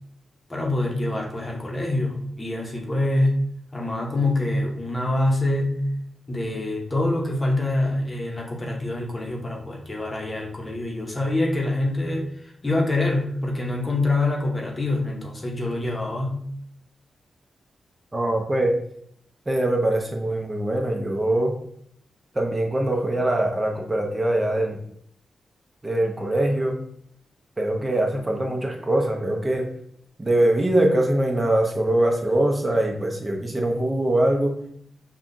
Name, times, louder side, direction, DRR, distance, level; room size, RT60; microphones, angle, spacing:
voice 1, 0.5-3.4 3.7-5.8 6.3-12.3 12.6-16.4, left 2 dB, 25° left, -1 dB, 0.9 m, -25 dB
voice 2, 18.1-18.7 19.5-21.5 22.3-24.8 25.8-26.7 27.6-29.6 30.2-34.5, right 1 dB, 20° right, 1 dB, 0.8 m, -22 dB
5.5 x 2.4 x 2.6 m, 0.67 s
cardioid pair, 80°, 0 cm